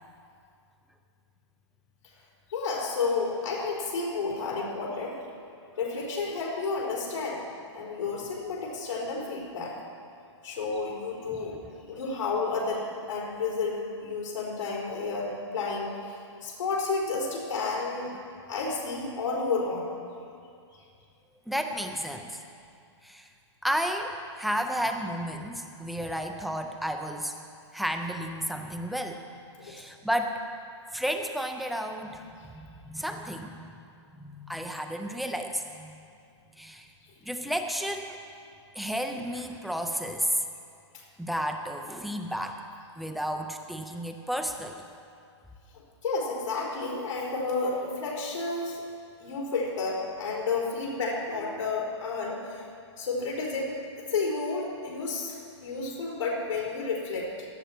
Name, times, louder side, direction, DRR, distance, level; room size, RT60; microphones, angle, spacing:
voice 1, 2.5-5.2 5.8-7.4 7.7-9.8 10.4-11.5 11.9-18.1 18.5-19.9 29.6-29.8 40.9-41.0 45.7-48.8 49.2-52.7 53.0-57.5, left 4 dB, 85° left, -4 dB, 4.3 m, -31 dB
voice 2, 11.3-11.7 21.5-22.4 23.0-23.3 23.6-27.4 27.7-29.2 29.6-30.4 30.9-33.7 34.2-35.9 36.5-36.9 37.3-38.2 38.8-40.4 41.2-42.6 43.0-44.8 51.5-51.6, equal, ahead, 4 dB, 0.4 m, -32 dB
17.0 x 12.5 x 4.4 m, 2.4 s
hypercardioid pair, 165°, 16 cm